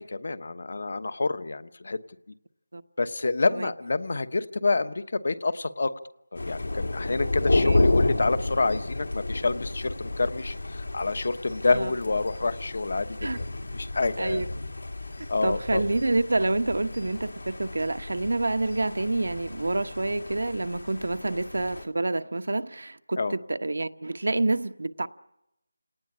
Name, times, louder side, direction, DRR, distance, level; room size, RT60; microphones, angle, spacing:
voice 1, 0.0-2.0 3.0-5.9 6.4-13.1 13.7-14.4 15.3-15.8 21.2-21.3 23.2-23.3, left 3 dB, 45° left, 1.1 m, -28 dB
Thunder, 6.4-21.9, left 2 dB, 80° left, 2.9 m, -31 dB
voice 2, 15.4-25.1, right 2 dB, 70° right, 1.2 m, -28 dB
29.0 x 18.5 x 9.9 m
figure-of-eight pair, 175°, 0 cm